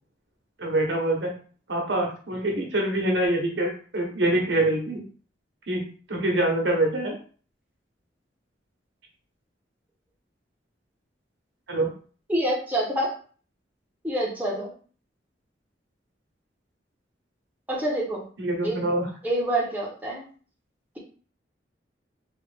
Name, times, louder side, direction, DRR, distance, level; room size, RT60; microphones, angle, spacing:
voice 1, 0.6-1.3 1.7-5.0 5.7-7.1 11.7-11.9 18.4-19.1, right 1 dB, 80° right, 1 dB, 1.0 m, -25 dB
voice 2, 12.3-13.1 14.0-14.7 17.7-18.2 18.6-18.9 19.2-20.2, right 1 dB, 10° right, -4 dB, 0.9 m, -26 dB
3.2 x 2.4 x 3.3 m, 0.41 s
head